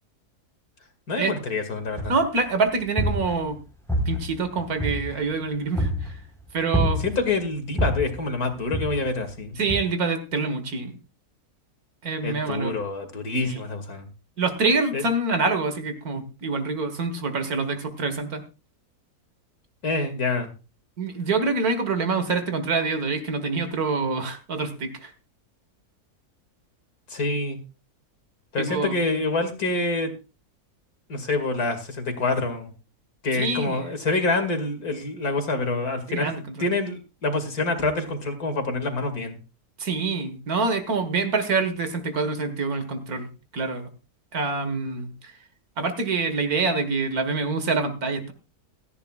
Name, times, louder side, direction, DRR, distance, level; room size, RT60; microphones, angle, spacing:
voice 1, 1.1-2.1 7.0-9.6 12.2-14.1 14.9-15.0 19.8-20.5 27.1-27.6 28.5-30.1 31.1-32.7 33.2-36.3 36.6-39.4, left 3 dB, 70° left, 6 dB, 2.7 m, -26 dB
sound 1, 2.0-2.4 2.8-3.6 3.9-5.3 5.7-6.2 6.7-7.3 7.8-8.2 8.7-9.2 9.7-9.8, equal, ahead, 4.2 m, -27 dB
voice 2, 2.1-3.6 4.1-6.2 6.5-7.0 9.6-11.0 12.0-12.7 13.4-13.6 14.4-18.4 21.0-25.1 28.6-29.0 33.3-33.9 36.1-36.7 39.8-43.9 44.3-45.1 45.8-48.3, right 4 dB, 70° right, 9 dB, 2.1 m, -26 dB
17.0 x 14.0 x 2.4 m, 0.31 s
omnidirectional pair, 1.6 m